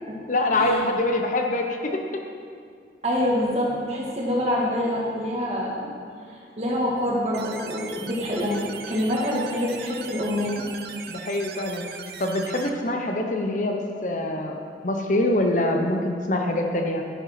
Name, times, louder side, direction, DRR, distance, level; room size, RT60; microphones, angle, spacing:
voice 1, 0.3-2.0 11.1-11.8 12.2-14.6 14.8-17.0, left 1 dB, 45° left, 3 dB, 0.9 m, -24 dB
voice 2, 3.0-5.9 6.3-10.6, left 1 dB, 35° right, -3 dB, 2.1 m, -26 dB
sound 1, 7.3-12.7, right 6 dB, 60° right, 0.7 m, -39 dB
11.0 x 7.5 x 5.9 m, 2.2 s
head